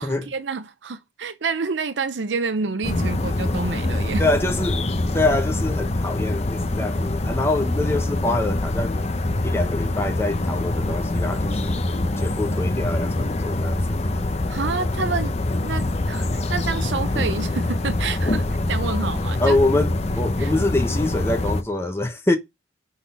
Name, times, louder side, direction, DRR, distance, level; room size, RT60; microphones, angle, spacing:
voice 1, 0.0-4.3 14.5-15.3 15.6-19.6 20.4-20.5, right 4 dB, 90° right, 0.6 m, -28 dB
sound 1, 2.8-21.6, left 2 dB, 40° left, 0.7 m, -24 dB
voice 2, 4.2-9.0 9.4-11.8 12.2-14.0 19.4-22.4, left 2 dB, 15° left, 1.1 m, -25 dB
6.0 x 4.2 x 5.6 m
head